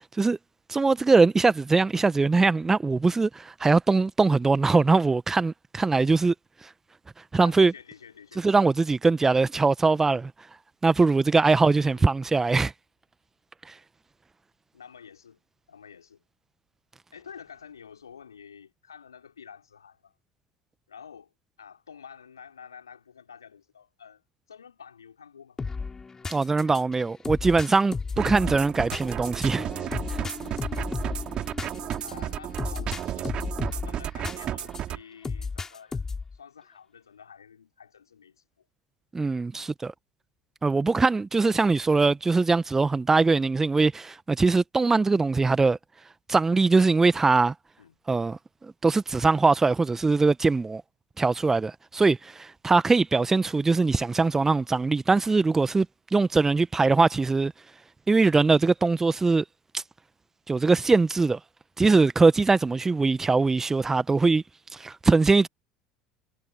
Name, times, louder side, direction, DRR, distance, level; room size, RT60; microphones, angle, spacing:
voice 1, 0.7-6.3 7.3-7.7 8.4-10.3 10.8-12.7 13.7-13.8 26.3-29.7 30.1-30.2 39.1-39.9 40.6-45.8 46.3-47.5 48.1-50.8 51.2-55.9 56.1-57.5 58.1-59.4 59.7-59.8 60.5-61.4 61.8-64.4 64.7-65.5, right 3 dB, 20° right, 1.3 m, -22 dB
voice 2, 7.4-8.4 11.5-12.1 14.7-15.4 15.7-16.2 17.1-20.1 20.9-21.3 21.6-25.6 32.0-33.4 33.8-36.0 36.3-38.7 39.5-39.7 47.8-48.0, left 7 dB, 85° left, 4.6 m, -49 dB
sound 1, 25.6-34.8 35.2-36.4, left 4 dB, 20° left, 5.0 m, -34 dB
sound 2, 28.2-35.0, right 11 dB, 45° right, 3.6 m, -33 dB
figure-of-eight pair, 65°, 2 cm